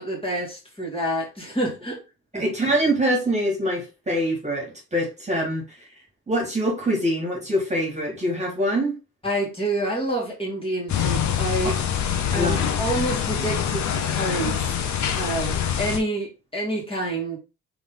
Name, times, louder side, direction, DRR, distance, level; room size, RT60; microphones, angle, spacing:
voice 1, 0.0-2.0 2.3-2.5 9.2-11.8 12.3-14.6 15.1-17.4, right 1 dB, 20° left, -3 dB, 2.3 m, -28 dB
voice 2, 2.3-5.8 6.3-9.0 12.3-12.6, equal, 25° right, -1 dB, 1.9 m, -24 dB
sound 1, 10.9-16.0, left 8 dB, 65° left, 0.9 m, -25 dB
3.7 x 3.5 x 3.8 m, 0.28 s
cardioid pair, 90°, 30 cm